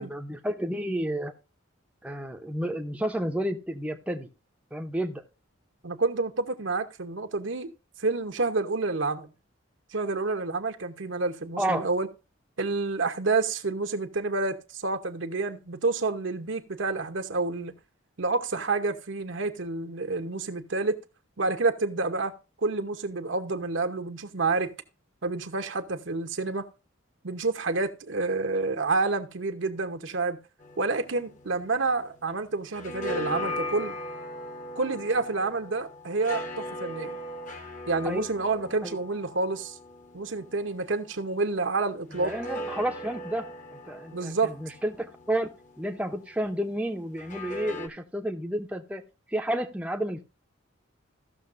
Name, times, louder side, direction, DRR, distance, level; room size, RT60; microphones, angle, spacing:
voice 1, 0.0-1.3 2.0-4.3 4.7-5.2 11.6-11.9 38.0-38.3 38.8-39.0 42.1-49.0 49.3-50.2, right 1 dB, 5° right, 0.7 m, -31 dB
voice 2, 5.8-7.7 8.0-9.3 9.9-12.1 12.6-17.7 18.2-21.0 21.4-22.3 22.6-24.7 25.2-26.7 27.2-30.4 30.8-33.9 34.8-37.2 37.9-39.7 40.1-42.3 44.1-44.5, right 3 dB, 65° right, 0.9 m, -28 dB
sound 1, 30.6-32.3 32.6-41.3 42.1-46.2 47.2-47.9, left 1 dB, 40° left, 1.0 m, -39 dB
15.5 x 6.4 x 2.5 m
head